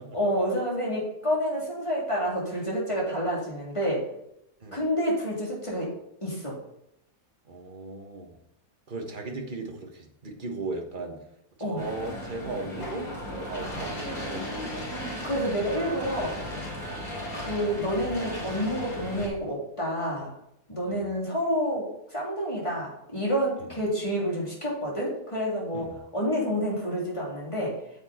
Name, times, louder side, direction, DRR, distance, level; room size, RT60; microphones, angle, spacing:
voice 1, 0.1-4.0 4.7-5.9 6.2-6.5 11.6-11.8 15.2-16.3 17.3-20.3 20.7-21.8 22.1-27.7, equal, 20° left, -4 dB, 3.3 m, -28 dB
voice 2, 7.5-8.4 8.9-11.2 11.6-14.9 16.9-17.1 20.9-21.1 23.6-23.8 25.7-26.0, right 3 dB, 35° right, 2 dB, 1.6 m, -37 dB
sound 1, 11.8-19.3, equal, 80° left, 3.8 m, -36 dB
9.0 x 7.2 x 4.4 m, 0.80 s
omnidirectional pair, 1.5 m